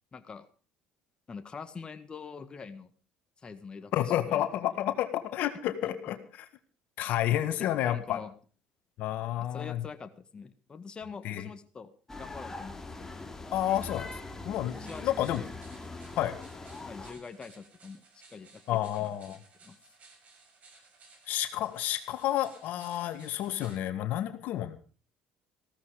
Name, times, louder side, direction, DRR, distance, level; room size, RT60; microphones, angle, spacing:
voice 1, 0.1-0.4 1.3-2.9 3.4-4.5 5.8-5.9 7.6-8.3 9.5-13.2 14.7-15.6 16.9-18.0 18.3-18.6 18.9-19.8, left 5 dB, 30° left, 8 dB, 1.7 m, -45 dB
voice 2, 3.9-6.5 7.0-8.2 9.0-9.8 11.2-11.5 13.5-14.1 14.4-14.7 15.0-15.4 16.1-16.4 18.7-19.4 21.3-24.8, left 12 dB, 70° left, 9 dB, 1.7 m, -30 dB
sound 1, 12.1-17.1, left 3 dB, 15° left, 2.9 m, -42 dB
sound 2, 14.7-23.8, right 4 dB, 50° right, 6.2 m, -58 dB
15.5 x 13.5 x 5.1 m, 0.38 s
supercardioid pair, 85°, 3 cm